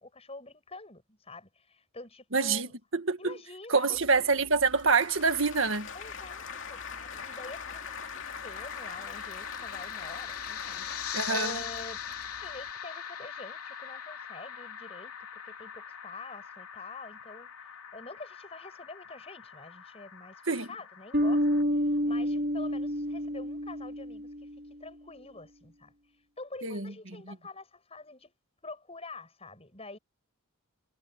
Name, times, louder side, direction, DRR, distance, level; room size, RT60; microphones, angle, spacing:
voice 1, 0.0-2.7 3.2-4.0 5.9-12.0 12.4-28.3 28.6-30.0, left 3 dB, 25° left, 7.4 m, -47 dB
voice 2, 2.3-3.3 3.7-5.9 11.1-11.6 20.5-20.7 26.6-26.9, right 4 dB, 60° right, 1.8 m, -26 dB
Applause / Crowd, 3.9-12.7, left 6 dB, 60° left, 2.7 m, -44 dB
sound 1, 6.3-21.6, left 8 dB, 85° left, 3.5 m, -42 dB
Bass guitar, 21.1-24.6, equal, 45° right, 3.3 m, -29 dB
head